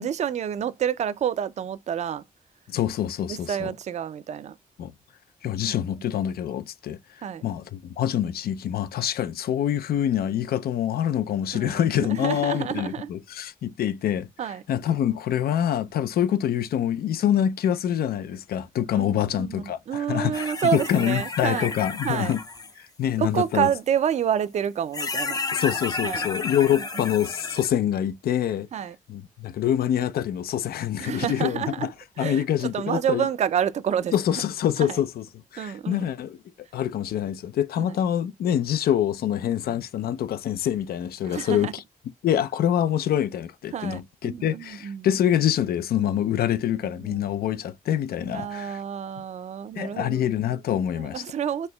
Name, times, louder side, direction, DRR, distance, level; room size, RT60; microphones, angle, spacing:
voice 1, 0.0-2.2 3.3-4.6 5.7-5.8 7.2-7.4 11.5-13.1 14.4-14.6 19.0-21.7 22.0-22.3 23.2-25.4 26.0-26.3 26.7-27.1 28.7-29.0 31.0-31.9 32.2-34.1 34.8-35.0 35.6-36.0 37.8-37.9 41.3-41.7 43.7-45.1 47.0-47.3 48.2-50.3 50.9-51.7, right 9 dB, 50° right, 0.4 m, -29 dB
voice 2, 2.7-3.7 4.8-4.9 5.4-7.0 7.4-14.3 14.7-22.4 22.8-23.7 25.5-28.7 29.1-31.9 32.2-33.3 34.1-35.2 35.5-36.4 36.7-41.8 42.2-48.8 49.8-51.2, left 10 dB, 90° left, 0.4 m, -25 dB
sound 1, 20.3-22.7 24.1-24.2 24.9-27.7, left 3 dB, 25° left, 0.4 m, -32 dB
4.2 x 3.2 x 2.2 m
cardioid pair, 110°, 15 cm